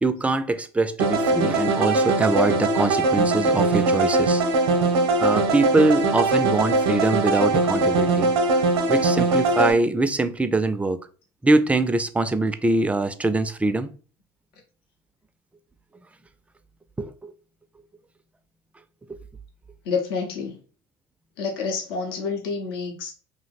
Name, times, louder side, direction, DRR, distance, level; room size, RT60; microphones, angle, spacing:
voice 1, 0.0-4.4 5.2-8.3 8.9-11.0 11.4-13.9 17.0-17.3 19.1-19.2, right 2 dB, 10° right, 0.3 m, -23 dB
sound 1, 1.0-9.7, right 3 dB, 80° right, 0.6 m, -21 dB
voice 2, 19.8-20.6 21.4-23.1, left 5 dB, 80° left, 0.7 m, -28 dB
2.7 x 2.0 x 4.0 m
hypercardioid pair, 70°, 12 cm